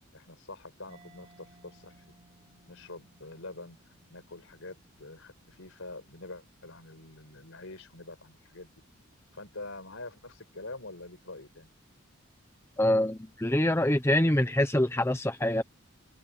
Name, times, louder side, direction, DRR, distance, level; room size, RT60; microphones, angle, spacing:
voice 1, 0.1-2.0 2.7-3.8 4.1-8.7 9.3-11.7, left 2 dB, 65° left, 5.3 m, -45 dB
Mallet percussion, 0.9-8.4, right 2 dB, 25° right, 4.5 m, -63 dB
voice 2, 12.8-15.6, left 1 dB, 10° left, 0.8 m, -25 dB
head